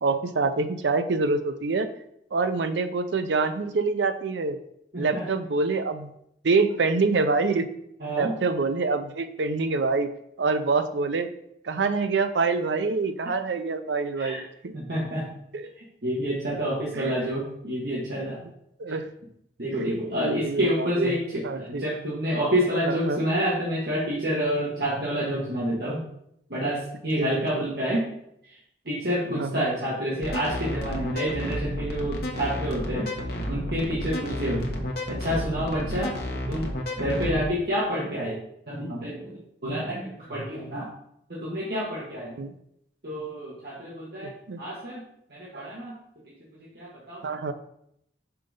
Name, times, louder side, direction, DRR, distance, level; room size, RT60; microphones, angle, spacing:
voice 1, 0.0-1.9 2.3-4.6 5.0-6.1 6.4-7.7 8.2-10.1 10.4-11.3 11.6-14.7 15.5-15.7 16.9-17.1 18.8-19.1 19.7-21.2 21.4-21.8 22.9-23.2 27.2-27.3 29.3-29.7 34.5-34.6 36.5-36.6 42.4-42.5 44.2-44.6 45.5-45.7 47.2-47.5, right 4 dB, 80° right, 10 dB, 0.5 m, -26 dB
voice 2, 8.0-8.3 14.2-14.4 14.7-15.2 15.8-18.4 18.9-19.0 19.6-26.0 26.5-28.0 28.8-33.1 33.5-34.7 35.1-36.7 37.0-38.4 38.7-40.9 41.3-42.3 43.0-44.3 44.6-45.0 45.3-45.9 46.7-47.2, equal, 60° right, -7 dB, 1.6 m, -28 dB
sound 1, 30.2-37.5, left 1 dB, 55° left, 1.0 m, -31 dB
5.8 x 3.9 x 5.1 m, 0.75 s
head